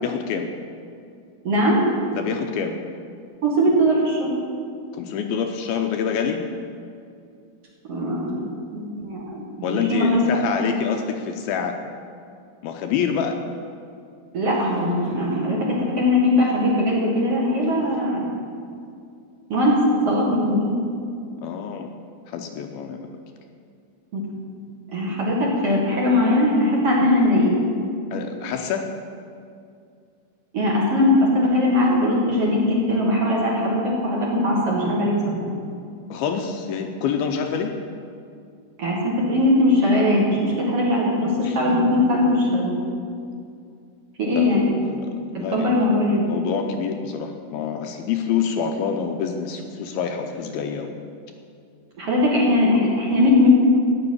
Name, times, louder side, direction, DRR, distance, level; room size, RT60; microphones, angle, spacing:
voice 1, 0.0-0.5 2.1-2.7 4.9-6.4 9.6-11.7 12.6-13.4 21.4-21.9 22.3-23.1 28.1-28.9 36.1-37.7 41.4-41.6 44.3-45.1 45.4-45.7 46.1-50.9, left 7 dB, 80° left, 4 dB, 2.5 m, -27 dB
voice 2, 1.4-1.8 3.4-4.3 7.9-8.4 8.7-9.4 9.7-10.2 10.6-10.7 14.3-18.3 19.5-20.8 24.1-24.2 24.9-27.6 30.5-35.4 38.8-42.8 44.2-44.7 45.3-46.2 52.0-53.5, left 1 dB, 45° right, -4 dB, 2.6 m, -20 dB
13.5 x 6.4 x 9.8 m, 2.4 s
omnidirectional pair, 4.7 m